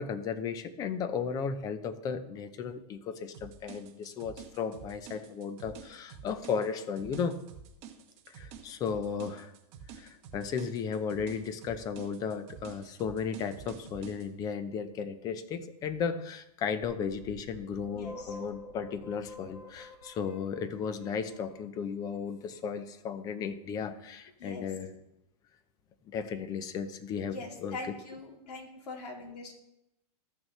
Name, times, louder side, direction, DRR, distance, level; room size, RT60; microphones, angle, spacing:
voice 1, 0.0-7.4 8.3-9.5 10.0-24.9 26.1-27.8, left 6 dB, 20° left, 11 dB, 0.5 m, -35 dB
sound 1, 3.3-14.3, right 7 dB, 30° right, 1.0 m, -49 dB
sound 2, 17.2-21.7, left 2 dB, 45° left, 1.9 m, -47 dB
voice 2, 17.9-18.4 24.4-24.7 27.3-29.5, left 3 dB, 85° left, 1 dB, 2.8 m, -42 dB
14.0 x 6.2 x 3.2 m, 0.85 s
hypercardioid pair, 155°, 20 cm